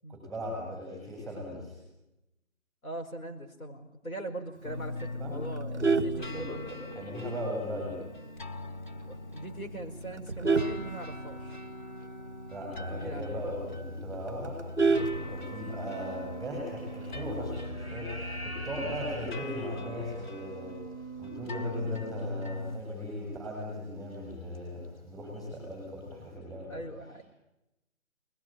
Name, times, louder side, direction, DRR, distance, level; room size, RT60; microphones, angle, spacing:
voice 1, 0.1-1.7 5.2-5.3 6.1-8.0 12.5-14.6 15.2-20.8 21.2-26.8, equal, ahead, -3 dB, 7.8 m, -38 dB
voice 2, 2.8-6.7 9.1-11.6 12.9-13.4 15.1-15.3 18.8-19.0 26.7-27.2, right 1 dB, 85° left, 4 dB, 5.1 m, -41 dB
sound 1, 4.6-22.8, left 1 dB, 35° left, 1.0 m, -40 dB
Vehicle horn car horn honking, 5.5-7.0 7.5-7.7 8.0-8.1 8.6-8.7 8.9-9.3 9.9-11.7 12.1-12.2 12.4-12.5 13.0-13.1 13.4-13.5 13.8-15.8 17.0-17.4, right 4 dB, 15° right, 0.8 m, -29 dB
sound 2, 14.7-14.9 16.0-16.1 17.0-17.3 17.5-20.3 22.1-22.2 22.7-22.8 23.7-24.0 24.3-24.6 24.8-24.9, equal, 15° left, 5.2 m, -43 dB
22.0 x 21.0 x 9.2 m, 0.89 s
hypercardioid pair, 170°, 41 cm